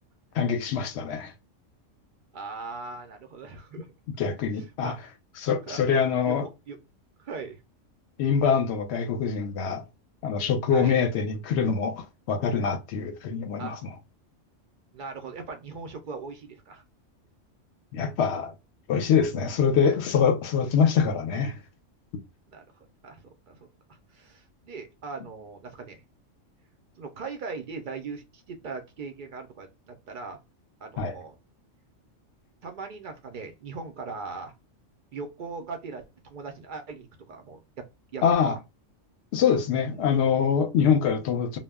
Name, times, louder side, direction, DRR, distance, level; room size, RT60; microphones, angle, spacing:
voice 1, 0.3-1.3 4.2-4.9 5.4-6.5 8.2-9.8 10.2-13.8 17.9-18.5 18.9-21.5 31.0-31.1 38.2-38.5 39.3-41.6, left 6 dB, 65° left, 0.8 m, -24 dB
voice 2, 2.3-3.9 4.8-5.0 5.7-5.9 6.2-6.8 7.2-7.6 10.7-11.0 13.6-13.8 14.9-16.8 19.3-19.5 22.5-22.6 23.0-23.6 24.1-26.0 27.0-30.4 30.8-31.3 32.6-34.5 35.1-37.9 38.1-38.6 39.9-40.0 40.9-41.2, right 4 dB, 60° right, 0.5 m, -39 dB
2.2 x 2.0 x 3.4 m
omnidirectional pair, 1.3 m